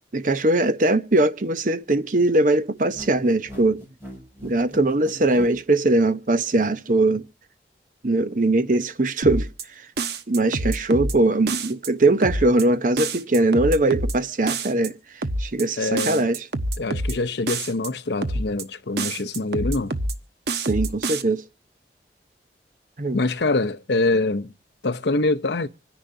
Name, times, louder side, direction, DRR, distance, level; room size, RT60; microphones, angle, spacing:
voice 1, 0.1-3.8 4.4-7.2 8.0-9.5 10.3-14.9 15.4-16.4 20.5-21.4 23.0-23.2, right 2 dB, 45° right, 0.8 m, -21 dB
sound 1, 2.8-5.6, equal, 10° right, 6.0 m, -40 dB
sound 2, 9.2-9.6 10.0-11.1 11.5-11.9 12.2-12.6 13.0-14.1 14.5-14.9 15.2-15.6 16.0-17.1 17.5-17.9 18.2-18.6 19.0-20.1 20.5-21.2, right 2 dB, 70° right, 1.1 m, -26 dB
voice 2, 15.8-16.3 16.8-20.0 23.1-24.5 24.8-25.7, left 2 dB, 75° left, 0.7 m, -24 dB
26.0 x 10.5 x 2.6 m
head